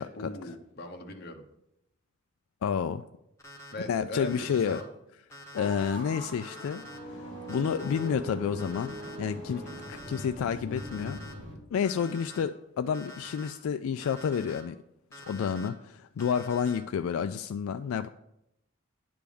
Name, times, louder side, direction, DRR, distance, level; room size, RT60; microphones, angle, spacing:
voice 1, 0.0-1.4 3.7-4.9 9.5-9.8, left 1 dB, 50° left, 4 dB, 1.0 m, -40 dB
voice 2, 2.6-3.0 3.9-4.8 5.5-6.8 7.1-7.2 7.5-9.6 9.9-11.2 11.7-14.8 15.1-18.1, left 7 dB, 80° left, 10 dB, 0.3 m, -30 dB
Alarm, 3.4-3.7 4.2-4.8 5.3-5.9 6.4-7.0 7.5-8.1 8.6-9.2 9.7-10.3 10.8-11.3 11.8-12.4 12.9-13.5 14.0-14.6 15.1-15.7 16.2-16.8, left 1 dB, 15° left, 1.0 m, -47 dB
sound 1, 5.5-11.5, equal, 55° right, 2.1 m, -41 dB
10.0 x 3.5 x 6.9 m, 0.83 s
head